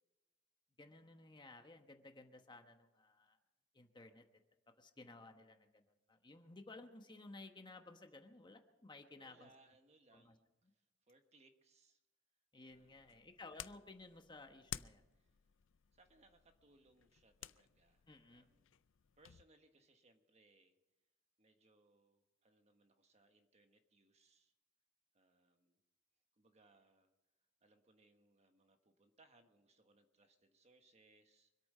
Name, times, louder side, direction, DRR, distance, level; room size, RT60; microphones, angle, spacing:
voice 1, 0.8-3.4 3.7-4.4 4.8-9.5 10.1-10.3 12.5-15.0 18.1-18.5, left 2 dB, 25° left, 6 dB, 1.1 m, -57 dB
voice 2, 9.1-12.0 12.6-13.3 15.2-15.4 15.9-18.7 19.2-20.7 21.4-24.5 25.1-25.8 26.4-27.1 27.6-31.5, right 2 dB, 35° right, 6 dB, 1.4 m, -71 dB
sound 1, 12.7-19.4, left 11 dB, 75° left, 0.5 m, -54 dB
25.0 x 8.7 x 5.5 m, 1.0 s
head